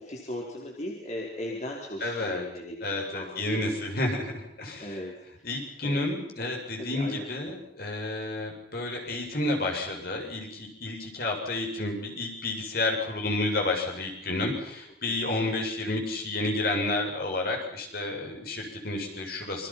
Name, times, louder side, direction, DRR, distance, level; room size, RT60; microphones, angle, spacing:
voice 1, 0.0-3.7 4.8-6.1 6.7-7.3 15.1-15.4, left 1 dB, 40° left, -2 dB, 4.5 m, -38 dB
voice 2, 2.0-2.4 2.8-4.9 5.4-19.7, left 2 dB, 60° left, 1 dB, 7.7 m, -30 dB
28.5 x 24.5 x 6.0 m, 0.69 s
head